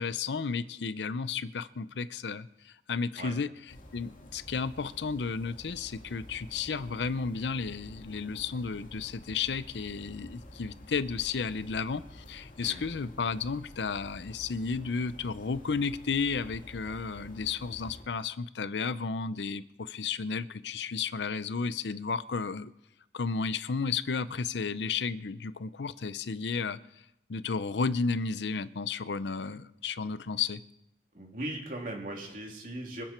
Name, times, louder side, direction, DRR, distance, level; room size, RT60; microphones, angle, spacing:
voice 1, 0.0-3.5 3.9-22.7 23.1-26.8 27.3-30.6, left 5 dB, 90° left, 15 dB, 0.6 m, -33 dB
sound 1, 3.7-18.0, left 1 dB, 50° left, 2.2 m, -50 dB
voice 2, 12.6-12.9 31.1-33.0, right 1 dB, 50° right, 0 dB, 3.1 m, -39 dB
25.5 x 9.0 x 4.4 m, 0.86 s
head